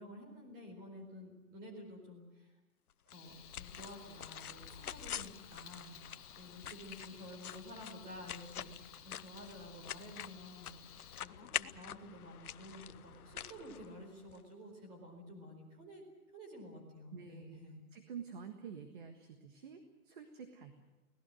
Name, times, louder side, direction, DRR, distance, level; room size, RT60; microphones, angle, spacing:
voice 1, 0.0-2.5 3.1-5.9 6.3-16.0 16.3-17.8, equal, 15° right, 2 dB, 4.5 m, -51 dB
sound 1, 3.1-14.4, left 10 dB, 75° left, 0.9 m, -46 dB
Frying (food), 3.1-11.2, left 8 dB, 25° left, 2.2 m, -57 dB
voice 2, 17.1-17.6 17.9-20.8, right 6 dB, 35° right, 6 dB, 1.6 m, -49 dB
25.0 x 18.0 x 7.8 m, 1.1 s
hypercardioid pair, 175°, 45 cm